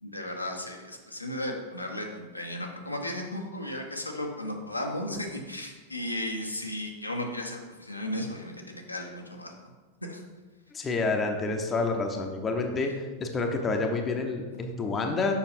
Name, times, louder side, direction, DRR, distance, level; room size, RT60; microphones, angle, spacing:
voice 1, 0.0-9.7 10.1-10.2, left 1 dB, 85° left, 1 dB, 1.0 m, -35 dB
voice 2, 10.7-15.3, left 3 dB, 20° left, 3 dB, 0.9 m, -28 dB
6.9 x 5.7 x 4.4 m, 1.3 s
figure-of-eight pair, 90°, 0 cm